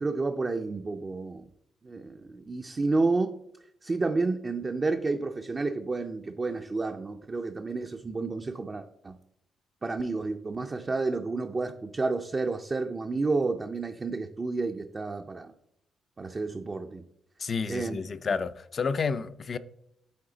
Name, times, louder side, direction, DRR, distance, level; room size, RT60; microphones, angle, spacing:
voice 1, 0.0-1.5 1.8-3.3 3.8-9.2 9.8-15.5 16.2-17.0 17.7-18.0, right 3 dB, 30° right, 0.4 m, -30 dB
voice 2, 17.4-19.6, left 5 dB, 40° left, 0.4 m, -30 dB
8.6 x 4.0 x 3.9 m
cardioid pair, 90°, 0 cm